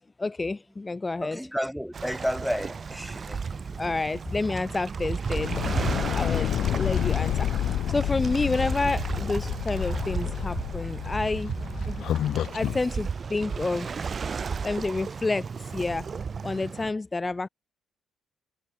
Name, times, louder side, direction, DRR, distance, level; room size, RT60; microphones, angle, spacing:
voice 1, 0.2-1.4 3.8-5.5 6.1-11.5 11.9-12.1 12.5-14.0 14.6-16.1 16.4-17.5, left 3 dB, 20° left, 2.1 m, -29 dB
voice 2, 1.2-3.9, equal, ahead, 4.1 m, -32 dB
Waves surf, 1.9-16.9, right 5 dB, 40° right, 4.9 m, -34 dB
sound 1, 5.3-12.8, left 11 dB, 70° left, 1.8 m, -29 dB
cardioid pair, 90°, 0 cm